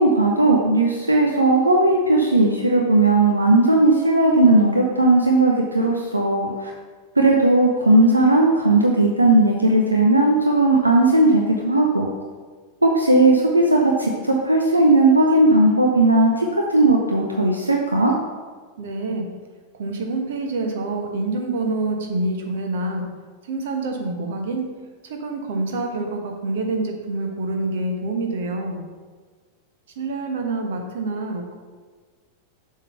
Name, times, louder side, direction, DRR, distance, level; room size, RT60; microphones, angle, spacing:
voice 1, 0.0-6.7 7.2-12.1 12.8-18.1, right 2 dB, 80° right, 0 dB, 0.7 m, -17 dB
voice 2, 18.8-19.3 19.8-23.1 23.5-24.8 25.0-28.8 30.0-31.5, right 2 dB, 60° right, 3 dB, 1.1 m, -26 dB
7.2 x 3.8 x 5.6 m, 1.4 s
figure-of-eight pair, 90°, 0 cm